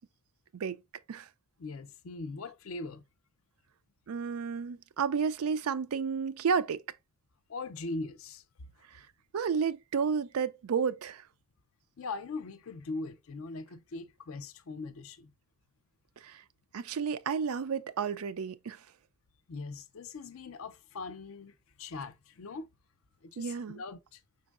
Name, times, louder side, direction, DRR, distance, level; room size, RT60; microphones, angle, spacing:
voice 1, 1.6-3.0 7.5-8.4 12.0-15.3 19.5-22.7 23.2-24.2, left 3 dB, 70° left, 0.5 m, -41 dB
voice 2, 4.1-6.8 8.9-9.1 9.3-11.3 16.2-16.4 16.7-18.8 23.4-23.8, right 6 dB, 85° right, 0.4 m, -32 dB
5.3 x 4.0 x 2.4 m
head